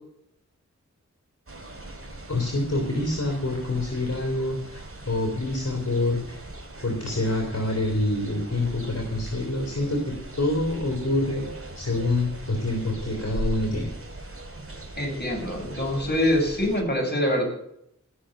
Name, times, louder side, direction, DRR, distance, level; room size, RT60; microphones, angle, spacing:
sound 1, 1.5-16.8, right 2 dB, 50° right, 3.1 m, -39 dB
voice 1, 2.3-6.4 6.8-11.5 11.8-13.9, left 2 dB, 60° left, 1 dB, 3.3 m, -26 dB
voice 2, 15.0-17.4, left 1 dB, 35° left, 0 dB, 6.8 m, -24 dB
19.0 x 6.4 x 9.0 m, 0.75 s
wide cardioid pair, 45°, 29 cm